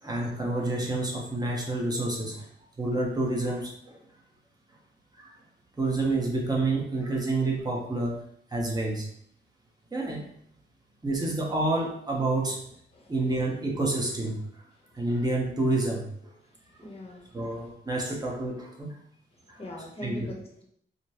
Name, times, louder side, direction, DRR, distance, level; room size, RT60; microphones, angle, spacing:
voice 1, 0.0-2.5 2.8-4.0 5.2-5.3 5.8-8.2 8.5-9.1 9.9-10.2 11.0-12.6 13.1-14.6 14.9-16.3 17.3-18.9 19.5-19.6 20.0-20.3, right 2 dB, 20° right, -1 dB, 1.0 m, -29 dB
voice 2, 12.9-13.4 14.8-15.0 16.4-17.6 18.1-18.2 19.3-20.6, left 1 dB, 30° left, -2 dB, 1.0 m, -44 dB
5.1 x 2.2 x 3.0 m, 0.67 s
wide cardioid pair, 115°, 20 cm